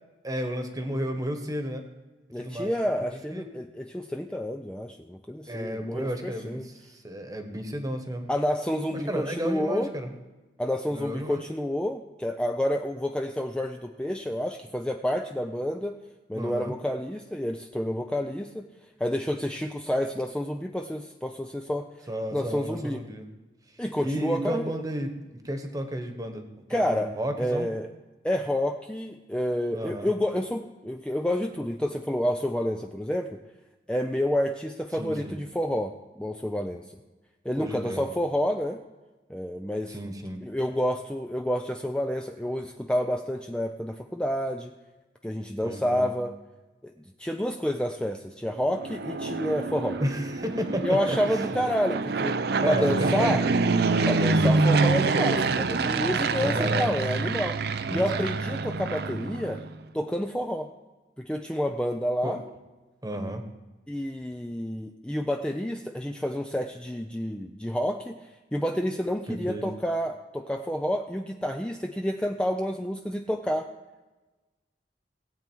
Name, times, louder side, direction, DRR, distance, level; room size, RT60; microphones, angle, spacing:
voice 1, 0.2-1.8 2.4-2.7 3.3-3.4 5.5-8.3 8.9-10.1 10.9-11.4 16.3-16.7 22.1-23.3 24.0-26.4 26.7-27.7 29.7-30.1 34.9-35.4 37.6-38.1 39.9-40.4 45.6-46.1 50.0-51.2 52.6-53.5 54.3-54.5 56.4-56.9 57.9-58.3 62.2-62.4 63.0-63.4 69.3-69.6, equal, 20° right, 6 dB, 1.3 m, -32 dB
voice 2, 2.3-6.7 8.3-9.9 10.6-16.0 16.3-18.7 19.0-23.0 23.8-24.8 26.7-27.9 28.2-33.4 33.9-36.8 37.4-38.8 39.3-40.0 40.4-44.7 45.2-46.3 46.8-46.9 47.2-50.0 50.8-52.4 52.6-53.4 54.1-57.6 57.9-59.6 59.9-60.7 61.2-62.4 63.9-68.2 68.5-73.7, equal, 5° left, 4 dB, 0.4 m, -29 dB
Fixed-wing aircraft airplane, 48.7-59.8, right 3 dB, 60° right, 0.5 m, -26 dB
18.5 x 8.3 x 4.6 m, 1.2 s
head